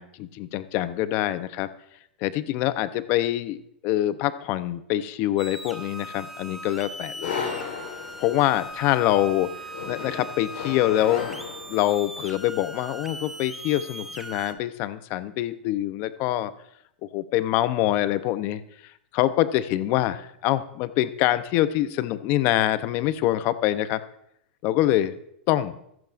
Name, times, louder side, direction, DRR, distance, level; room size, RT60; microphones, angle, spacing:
voice 1, 0.0-1.7 2.2-7.4 8.2-9.5 9.9-11.4 11.7-16.5 17.1-18.6 19.1-24.0 24.6-25.1 25.5-25.7, left 14 dB, 40° left, 13 dB, 0.7 m, -25 dB
sound 1, 5.4-14.5, right 1 dB, 5° right, 1.0 m, -39 dB
sound 2, 7.2-12.2, left 6 dB, 75° left, 3.8 m, -36 dB
14.5 x 14.0 x 2.5 m, 0.74 s
hypercardioid pair, 140°, 6 cm